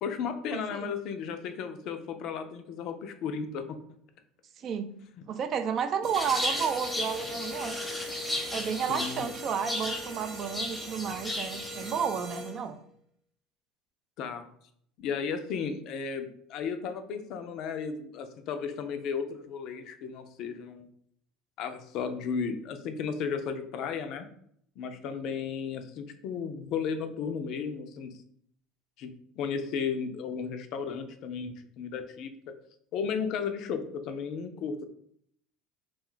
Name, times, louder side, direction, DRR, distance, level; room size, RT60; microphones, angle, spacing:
voice 1, 0.0-3.6 8.9-9.3 14.2-14.5 15.0-20.9 21.6-24.2 24.8-28.2 29.0-32.3 32.9-34.8, left 6 dB, 60° left, 8 dB, 0.4 m, -34 dB
voice 2, 0.5-0.9 4.6-4.9 5.3-7.8 8.5-12.8, right 7 dB, 45° right, 8 dB, 0.3 m, -32 dB
sound 1, 6.0-12.8, left 1 dB, 65° right, 0.8 m, -42 dB
sound 2, 6.1-12.0, left 1 dB, 10° left, 0.7 m, -35 dB
2.4 x 2.2 x 3.7 m, 0.66 s
hypercardioid pair, 75°, 0 cm